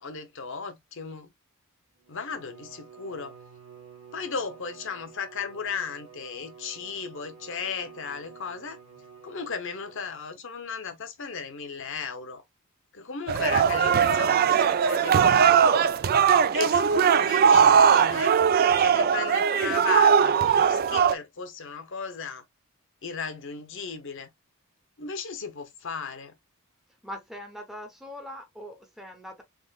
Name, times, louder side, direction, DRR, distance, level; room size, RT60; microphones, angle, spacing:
voice 1, 0.0-1.3 2.1-3.4 4.1-8.8 9.2-12.4 12.9-16.0 16.5-18.3 18.8-22.4 23.0-24.3 25.0-26.3, left 5 dB, 60° left, 0.9 m, -36 dB
Bowed string instrument, 2.0-10.3, right 6 dB, 85° right, 1.4 m, -49 dB
sound 1, 13.3-21.1, right 7 dB, 40° right, 0.3 m, -20 dB
voice 2, 27.0-29.4, equal, ahead, 0.8 m, -41 dB
3.7 x 3.6 x 2.4 m
head